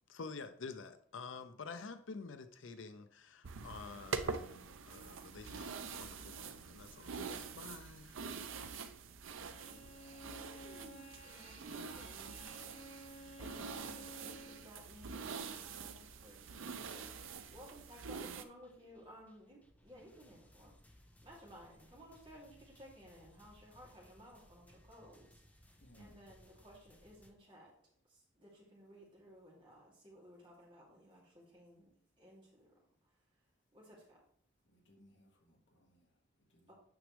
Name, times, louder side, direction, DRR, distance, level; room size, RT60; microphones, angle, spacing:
voice 1, 0.1-8.2, left 4 dB, 80° left, 0.6 m, -49 dB
sound 1, 3.4-18.4, right 5 dB, 85° right, 0.6 m, -45 dB
Bowed string instrument, 9.4-14.7, equal, 35° left, 0.6 m, -55 dB
voice 2, 9.7-13.1 13.4-27.7 28.0-31.9 32.2-32.7 33.0-33.4 33.7-34.2 36.7-36.8, equal, 25° right, 3.0 m, -58 dB
Apocalypse Runner (perc), 12.3-27.3, left 1 dB, 10° left, 0.9 m, -66 dB
voice 3, 25.8-26.4 34.6-36.7, equal, 65° left, 1.7 m, -65 dB
9.3 x 6.1 x 3.4 m
head